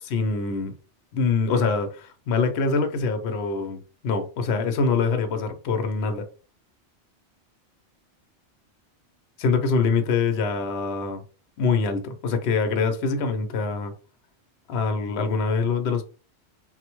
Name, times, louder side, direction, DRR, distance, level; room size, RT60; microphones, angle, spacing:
voice 1, 0.1-0.7 1.1-6.3 9.4-11.2 11.6-13.9 14.7-16.0, left 4 dB, 65° left, 0.8 m, -24 dB
4.0 x 2.1 x 2.9 m
omnidirectional pair, 1.2 m